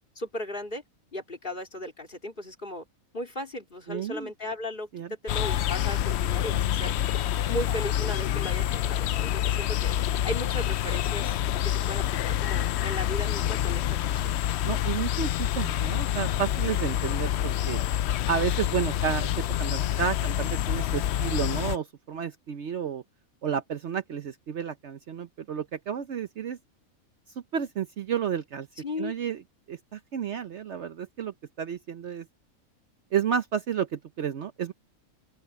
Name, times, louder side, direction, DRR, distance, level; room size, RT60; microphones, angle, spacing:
voice 1, 0.2-0.8 1.1-2.9 3.1-7.0 7.5-10.0 10.2-11.4 11.6-14.3 28.8-29.1, left 1 dB, 35° left, 3.7 m, -36 dB
voice 2, 3.9-4.3 4.9-5.1 14.6-17.8 18.3-23.0 23.4-26.6 27.5-28.7 29.0-29.4 29.7-32.3 33.1-34.7, right 8 dB, 60° right, 1.0 m, -31 dB
sound 1, 5.3-21.8, left 11 dB, 65° left, 0.7 m, -27 dB
open air
omnidirectional pair, 1.5 m